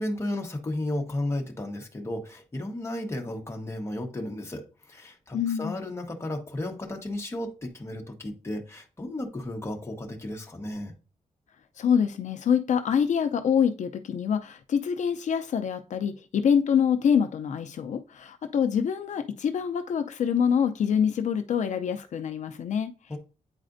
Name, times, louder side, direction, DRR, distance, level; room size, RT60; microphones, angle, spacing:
voice 1, 0.0-10.9 23.1-23.2, left 1 dB, 20° left, 1.1 m, -34 dB
voice 2, 5.3-5.8 11.8-22.9, left 7 dB, 70° left, 0.5 m, -25 dB
8.8 x 4.1 x 2.6 m
wide cardioid pair, 160°, 13 cm